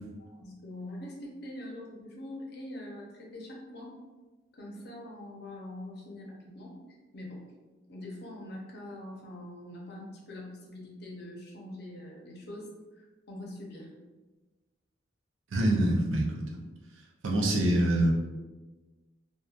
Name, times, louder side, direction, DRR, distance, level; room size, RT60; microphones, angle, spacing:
voice 1, 0.2-3.9 4.5-6.8 7.1-7.5 7.9-13.9, left 1 dB, 55° left, -2 dB, 0.6 m, -43 dB
voice 2, 15.5-16.6 17.2-18.1, right 1 dB, 85° right, -1 dB, 0.5 m, -25 dB
2.7 x 2.2 x 2.3 m, 1.2 s
head